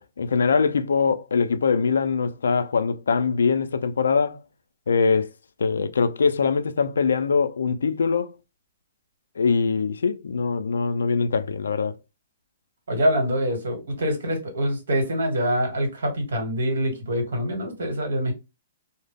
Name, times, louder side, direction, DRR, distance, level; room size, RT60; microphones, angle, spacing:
voice 1, 0.0-4.4 4.9-5.3 5.6-8.3 9.4-11.9, left 5 dB, 90° left, 0.4 m, -22 dB
voice 2, 12.9-18.3, equal, 80° right, 1.2 m, -25 dB
2.2 x 2.0 x 3.4 m
hypercardioid pair, 150°, 0 cm